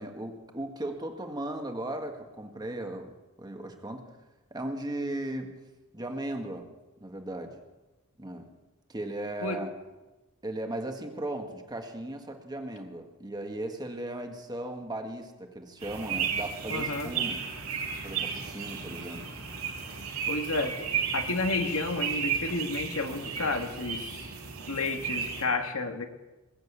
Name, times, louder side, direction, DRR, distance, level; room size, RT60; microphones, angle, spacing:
voice 1, 0.0-4.0 4.5-5.5 5.9-6.7 7.0-7.5 8.2-8.5 8.9-9.7 10.4-17.4 18.0-19.3, right 1 dB, 20° right, 4 dB, 1.6 m, -37 dB
sound 1, 15.8-25.4, right 7 dB, 90° right, 4.6 m, -34 dB
voice 2, 16.7-17.1 20.3-24.3 24.7-26.0, left 3 dB, 80° left, 5 dB, 1.7 m, -31 dB
20.5 x 8.1 x 8.2 m, 1.1 s
head